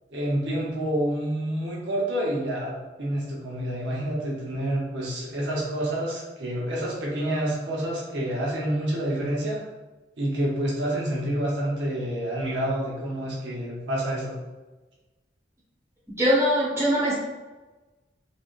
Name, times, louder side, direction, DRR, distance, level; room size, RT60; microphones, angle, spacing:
voice 1, 0.1-2.7 3.0-9.6 10.2-14.3, right 1 dB, 80° right, -5 dB, 0.9 m, -28 dB
voice 2, 16.2-17.1, equal, 15° right, -9 dB, 1.4 m, -21 dB
3.8 x 3.4 x 2.5 m, 1.2 s
head